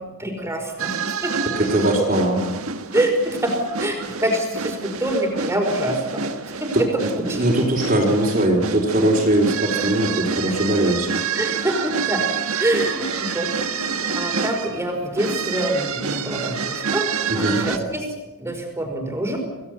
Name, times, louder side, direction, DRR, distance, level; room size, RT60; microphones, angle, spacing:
voice 1, 0.2-1.0 1.2-1.3 2.9-6.2 6.6-6.9 7.3-7.4 10.5-10.6 11.3-12.2 12.6-18.0 18.4-19.4, right 1 dB, 10° right, 3 dB, 5.0 m, -25 dB
sound 1, 0.8-17.8, right 5 dB, 75° right, 1.6 m, -28 dB
voice 2, 1.5-2.4 6.7-11.1 17.3-17.7, right 1 dB, 40° right, -4 dB, 4.2 m, -20 dB
27.0 x 18.0 x 8.1 m, 1.2 s
head